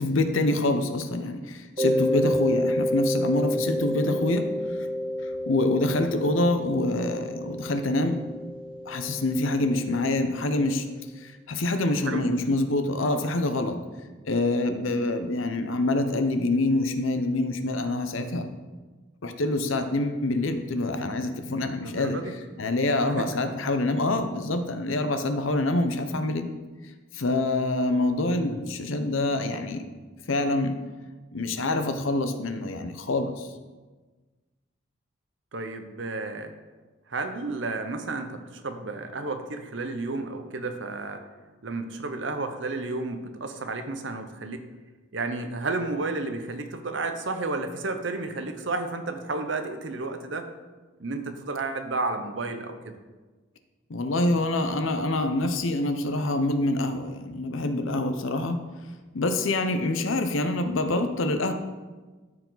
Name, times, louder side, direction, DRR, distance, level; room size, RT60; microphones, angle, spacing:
voice 1, 0.0-4.9 5.2-8.2 8.9-10.9 11.2-13.8 14.2-18.5 19.2-22.2 22.6-26.5 27.1-29.8 30.3-30.7 31.3-33.5 53.9-58.6 59.1-61.5, left 2 dB, 80° left, 8 dB, 0.7 m, -26 dB
Mallet percussion, 1.8-10.4, left 1 dB, 25° right, 0.8 m, -29 dB
voice 2, 12.0-12.4 21.8-22.3 23.2-23.3 35.5-36.5 37.1-41.2 41.6-44.6 45.1-50.5 51.0-52.9, right 3 dB, 65° right, 7 dB, 0.8 m, -32 dB
13.5 x 4.8 x 4.0 m, 1.3 s
head